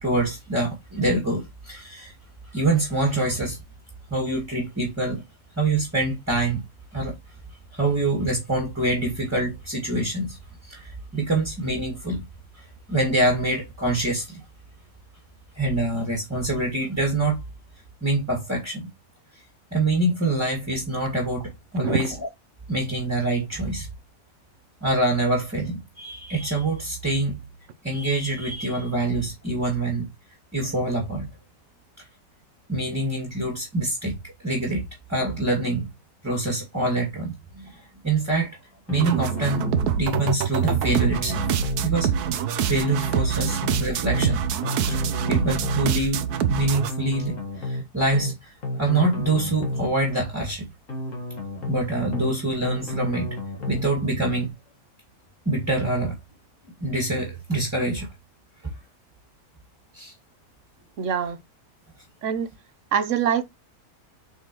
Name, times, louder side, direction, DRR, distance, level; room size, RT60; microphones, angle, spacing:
voice 1, 0.0-2.1 2.5-3.6 4.1-5.2 5.6-6.6 6.9-7.2 7.7-12.2 12.5-14.4 15.6-17.4 18.0-18.9 19.7-22.1 22.7-23.9 24.8-27.4 27.8-30.1 30.5-31.3 32.7-34.2 34.4-34.8 35.1-35.9 36.2-38.5 38.9-39.7 40.0-41.5 41.8-42.1 42.6-44.4 44.9-45.0 45.3-48.5 48.8-50.7 51.7-53.4 53.7-54.5 55.5-56.2 56.8-58.1 59.9-60.1, right 2 dB, 10° right, 2.0 m, -25 dB
sound 1, 38.9-39.8 40.1-40.3 40.6-41.9 42.9-43.8 44.1-44.3 44.6-45.9 46.9-47.8 48.1-48.3 48.6-49.9 50.9-51.8 52.1-52.3 52.6-53.9, left 1 dB, 55° left, 2.1 m, -31 dB
sound 2, 39.0-46.9, right 8 dB, 90° right, 1.3 m, -25 dB
voice 2, 61.0-61.4 62.2-62.5 62.9-63.4, right 8 dB, 60° right, 1.1 m, -24 dB
8.1 x 4.1 x 3.0 m
omnidirectional pair, 1.6 m